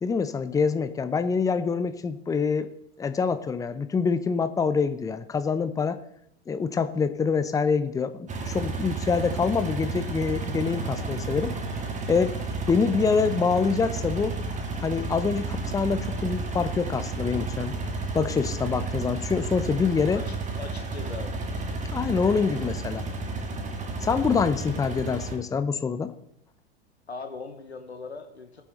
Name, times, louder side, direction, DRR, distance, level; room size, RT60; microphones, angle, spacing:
voice 1, 0.0-2.7 3.0-6.0 6.5-11.5 12.1-12.4 12.7-14.4 14.8-17.7 18.1-20.2 21.9-23.0 24.0-26.1, left 5 dB, 10° left, 12 dB, 0.7 m, -25 dB
sound 1, 8.3-25.4, right 3 dB, 25° right, 1.9 m, -32 dB
voice 2, 20.1-21.4 27.1-28.6, left 4 dB, 85° left, 6 dB, 1.1 m, -39 dB
17.5 x 9.1 x 3.2 m, 0.76 s
figure-of-eight pair, 85°, 31 cm